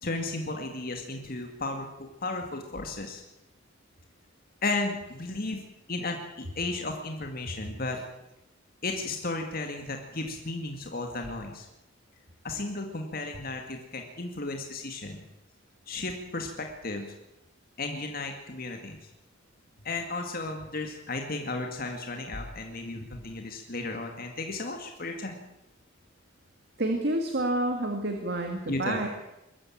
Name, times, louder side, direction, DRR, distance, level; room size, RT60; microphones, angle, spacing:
voice 1, 0.0-3.2 4.6-5.6 5.9-8.1 8.8-11.7 12.4-15.2 15.9-17.1 17.8-19.0 19.8-25.3 28.7-29.1, left 2 dB, 45° left, 3 dB, 2.2 m, -34 dB
voice 2, 26.8-29.1, right 1 dB, 55° right, 4 dB, 2.2 m, -28 dB
22.5 x 14.0 x 8.8 m, 0.91 s
head